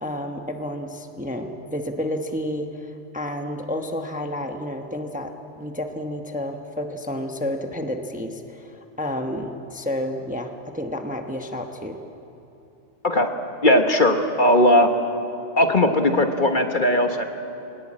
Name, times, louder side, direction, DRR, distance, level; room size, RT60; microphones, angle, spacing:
voice 1, 0.0-12.0, left 1 dB, 5° right, 4 dB, 1.0 m, -30 dB
voice 2, 13.6-14.9 15.6-17.2, left 1 dB, 40° left, 5 dB, 1.4 m, -18 dB
22.5 x 19.0 x 8.7 m, 2.8 s
omnidirectional pair, 1.3 m